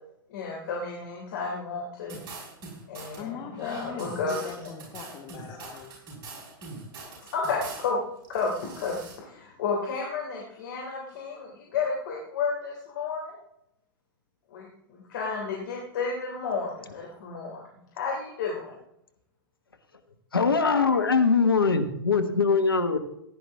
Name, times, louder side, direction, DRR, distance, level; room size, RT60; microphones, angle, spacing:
voice 1, 0.3-2.2 2.9-4.7 7.3-8.0 8.3-13.3 14.5-17.6 17.9-18.7, left 4 dB, 55° left, -3 dB, 3.2 m, -32 dB
sound 1, 2.1-3.2 3.6-7.9 8.2-9.1, right 3 dB, 35° right, 5.6 m, -43 dB
voice 2, 3.2-6.0, left 8 dB, 30° left, 6 dB, 1.3 m, -40 dB
voice 3, 20.3-23.0, left 4 dB, 80° left, 7 dB, 1.3 m, -22 dB
15.5 x 10.0 x 3.6 m, 0.78 s
figure-of-eight pair, 95°, 12 cm